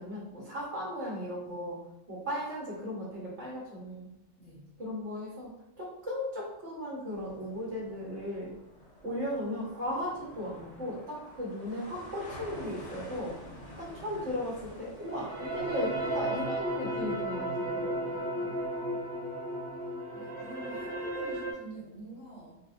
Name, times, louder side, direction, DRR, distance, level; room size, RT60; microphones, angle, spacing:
voice 1, 0.0-1.8 2.1-4.1 4.8-5.5 5.8-8.6 9.0-13.3 13.8-18.2, equal, 65° right, -6 dB, 1.3 m, -36 dB
voice 2, 4.4-4.8 18.1-19.1 20.1-22.6, right 2 dB, 75° left, -5 dB, 1.2 m, -48 dB
sound 1, 7.1-16.2, equal, 40° left, 0.9 m, -49 dB
sound 2, 15.0-21.5, right 1 dB, 45° right, 0.9 m, -34 dB
4.0 x 2.1 x 2.5 m, 0.94 s
omnidirectional pair, 1.3 m